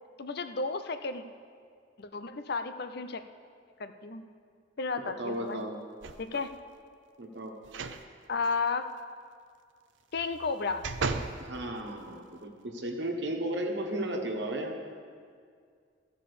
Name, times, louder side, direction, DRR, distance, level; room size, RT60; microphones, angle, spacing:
voice 1, 0.2-1.2 2.0-3.2 3.8-4.2 4.8-5.7 6.2-6.5 8.3-8.9 10.1-10.8, left 4 dB, 60° left, 9 dB, 0.6 m, -33 dB
voice 2, 5.0-5.8 7.2-7.5 11.4-14.7, right 1 dB, 65° right, 2 dB, 1.4 m, -34 dB
sound 1, 6.0-6.6 7.6-8.0 8.4-8.5 10.1-11.4 12.0-12.1, right 4 dB, 90° right, 0.6 m, -35 dB
15.0 x 5.3 x 6.9 m, 2.1 s
head